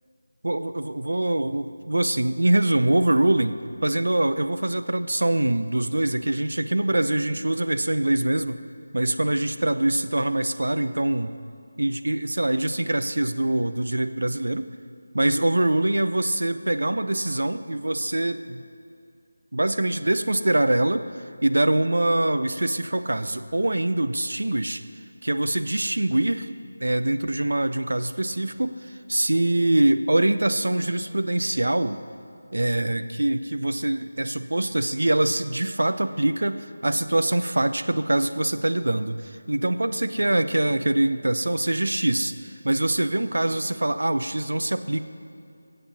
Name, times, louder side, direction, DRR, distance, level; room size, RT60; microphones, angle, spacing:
voice 1, 0.4-8.6 8.9-11.3 11.8-14.7 15.1-18.6 19.5-21.1 21.4-24.8 25.2-26.5 26.8-32.0 32.5-45.0, right 1 dB, 65° right, 9 dB, 0.7 m, -24 dB
23.5 x 7.9 x 5.6 m, 2.5 s
figure-of-eight pair, 160°, 0 cm